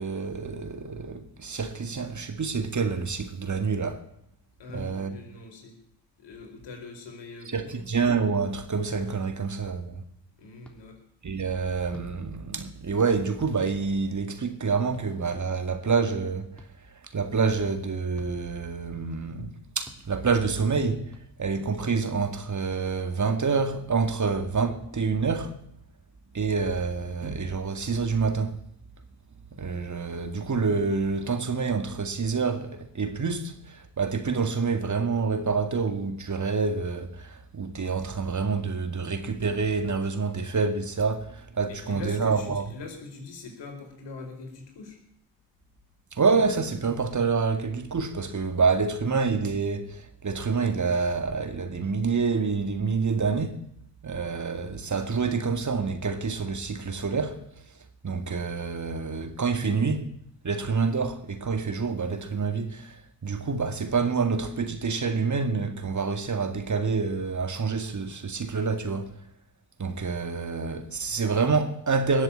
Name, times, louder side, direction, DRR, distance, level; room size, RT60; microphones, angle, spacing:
voice 1, 0.0-4.0 4.7-5.2 7.5-10.0 11.2-16.6 17.1-21.1 21.4-25.6 26.3-28.6 29.5-42.7 46.1-53.6 54.0-57.5 58.0-60.1 60.4-63.0 63.2-69.2 69.8-72.2, right 5 dB, 40° right, 2.1 m, -27 dB
voice 2, 4.6-5.8 6.2-7.8 10.4-11.0 19.1-19.2 41.7-45.0, left 3 dB, 65° left, 4.7 m, -42 dB
sound 1, 10.6-10.8 11.9-12.1 13.4-13.6 14.9-15.1 16.6-16.7 18.1-18.3 19.8-20.0 21.1-21.3 22.2-22.3, equal, ahead, 3.4 m, -49 dB
20.5 x 7.6 x 8.8 m
hypercardioid pair, 40°, 47 cm